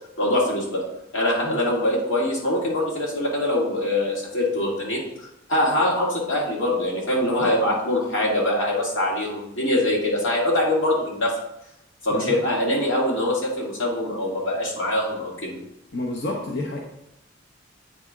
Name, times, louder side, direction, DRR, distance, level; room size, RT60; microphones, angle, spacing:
voice 1, 0.2-0.8 1.1-5.0 5.5-11.3 12.0-15.6, left 1 dB, 90° left, -3 dB, 2.2 m, -23 dB
voice 2, 15.9-16.8, left 2 dB, 55° left, 0 dB, 0.7 m, -29 dB
8.4 x 4.1 x 3.7 m, 0.84 s
head